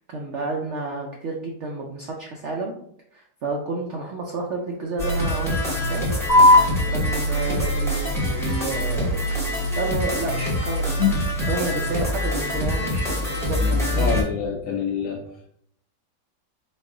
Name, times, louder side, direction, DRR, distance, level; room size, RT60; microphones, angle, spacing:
voice 1, 0.1-2.7 3.1-6.0 6.9-9.5 9.7-11.0 11.5-14.2, right 3 dB, 75° right, 0 dB, 0.6 m, -30 dB
sound 1, 5.0-14.2, equal, ahead, 0.6 m, -25 dB
sound 2, 6.3-13.3, left 2 dB, 45° left, 1.1 m, -24 dB
voice 2, 6.7-7.2 11.0-11.1 13.6-15.5, left 8 dB, 70° left, 0 dB, 0.7 m, -27 dB
4.1 x 2.4 x 3.7 m, 0.69 s
omnidirectional pair, 1.9 m